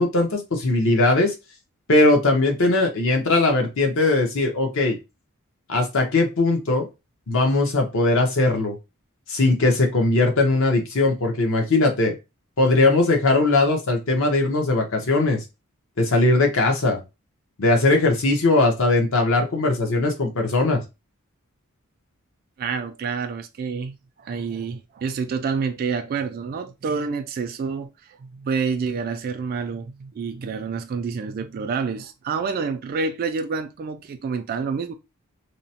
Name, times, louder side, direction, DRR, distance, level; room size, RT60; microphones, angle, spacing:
voice 1, 0.0-1.3 1.9-5.0 5.7-6.9 7.3-8.7 9.3-12.1 12.6-15.4 16.0-17.0 17.6-20.8, left 2 dB, 65° left, 0.8 m, -19 dB
voice 2, 22.6-34.9, right 5 dB, 45° right, 0.3 m, -28 dB
2.9 x 2.0 x 2.8 m
head